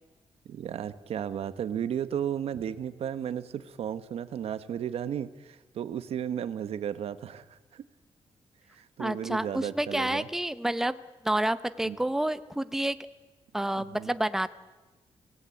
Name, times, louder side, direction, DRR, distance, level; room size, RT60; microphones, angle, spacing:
voice 1, 0.5-7.8 8.7-10.3 11.8-12.0 13.8-14.1, right 9 dB, 85° right, 12 dB, 1.1 m, -34 dB
voice 2, 9.0-11.0 11.2-13.0 13.5-14.5, right 1 dB, 5° right, 13 dB, 0.8 m, -29 dB
26.0 x 18.0 x 8.5 m, 1.2 s
wide cardioid pair, 120°, 10 cm